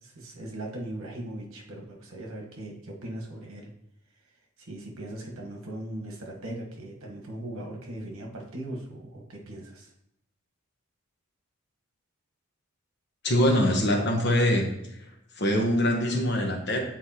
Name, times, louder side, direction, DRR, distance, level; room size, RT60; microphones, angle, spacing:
voice 1, 0.0-3.7 4.6-9.9, right 1 dB, 75° right, 0 dB, 1.2 m, -39 dB
voice 2, 13.2-14.7 14.9-15.0 15.4-16.8, left 1 dB, 50° left, 1 dB, 1.0 m, -23 dB
7.9 x 4.4 x 2.9 m, 0.81 s
head